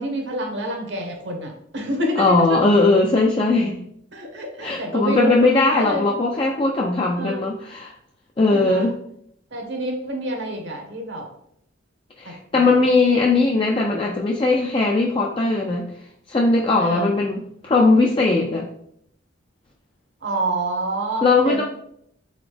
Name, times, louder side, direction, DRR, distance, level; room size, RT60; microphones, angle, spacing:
voice 1, 0.0-2.5 4.1-5.3 5.8-6.1 7.2-7.5 8.5-8.9 9.5-11.2 12.2-12.7 16.8-17.1 20.2-21.6, right 1 dB, 60° right, 2 dB, 1.0 m, -28 dB
voice 2, 2.2-3.8 4.6-7.9 8.4-9.0 12.2-15.9 16.3-18.7 21.2-21.6, left 3 dB, 25° left, -1 dB, 0.3 m, -19 dB
4.0 x 3.8 x 3.3 m, 0.71 s
head